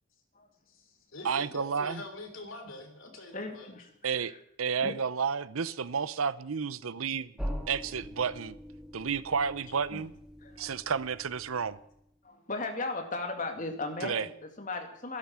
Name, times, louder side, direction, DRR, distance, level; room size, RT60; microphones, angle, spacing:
voice 1, 0.7-3.7, left 2 dB, 70° left, 3.4 m, -44 dB
voice 2, 1.2-2.0 4.0-7.3 7.7-8.6 8.9-10.1 10.6-11.8 14.0-14.3, right 6 dB, 90° right, 0.7 m, -31 dB
voice 3, 3.3-4.4 4.8-4.9 9.9-10.0 10.4-10.7 12.2-15.2, left 3 dB, 40° left, 2.3 m, -37 dB
sound 1, 7.4-12.1, equal, ahead, 2.1 m, -42 dB
13.0 x 11.5 x 7.6 m
head